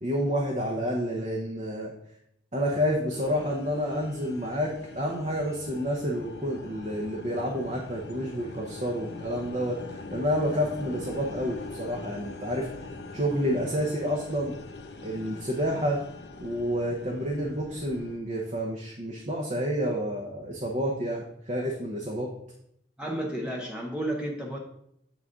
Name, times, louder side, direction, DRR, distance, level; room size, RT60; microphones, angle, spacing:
voice 1, 0.0-1.9 2.5-12.7 13.1-14.5 15.0-16.0 16.4-22.3, equal, 40° right, -2 dB, 0.8 m, -29 dB
sound 1, 3.1-18.2, left 2 dB, 65° left, 0.6 m, -42 dB
voice 2, 23.0-24.6, right 1 dB, 5° right, -2 dB, 0.6 m, -32 dB
7.3 x 4.1 x 3.6 m, 0.74 s
head